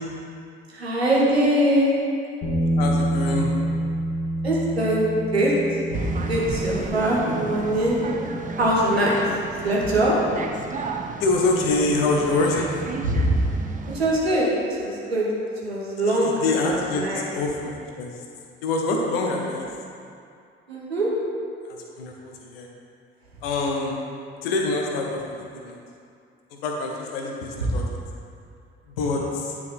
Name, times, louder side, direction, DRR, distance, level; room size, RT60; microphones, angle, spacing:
voice 1, 0.7-1.9 4.4-5.5 5.9-8.0 8.6-9.2 9.6-10.2 13.0-13.3 13.9-14.5 14.8-15.3 15.6-16.4 17.0-17.2 20.7-21.1 27.6-27.7, right 1 dB, 85° right, -4 dB, 1.0 m, -22 dB
Bass guitar, 2.4-8.7, right 1 dB, 50° left, 1.6 m, -28 dB
voice 2, 2.8-3.6 8.8-8.9 11.2-13.0 16.1-18.2 18.6-19.7 21.6-22.7 23.4-24.0 24.4-25.8 26.6-27.8 28.9-29.5, left 3 dB, 70° left, 0 dB, 1.0 m, -26 dB
sound 1, 5.9-14.1, right 4 dB, 25° right, 0.7 m, -33 dB
9.5 x 4.8 x 3.7 m, 2.4 s
figure-of-eight pair, 45°, 30 cm